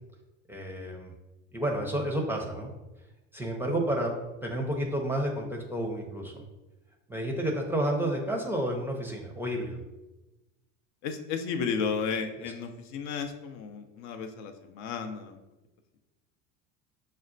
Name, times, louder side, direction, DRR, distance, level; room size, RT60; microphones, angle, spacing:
voice 1, 0.5-1.1 1.5-2.7 3.3-4.1 4.4-6.4 7.1-9.8, right 1 dB, 5° right, 0 dB, 0.5 m, -30 dB
voice 2, 11.0-15.4, left 5 dB, 55° left, 6 dB, 0.5 m, -33 dB
6.2 x 2.2 x 2.5 m, 1.0 s
hypercardioid pair, 85°, 39 cm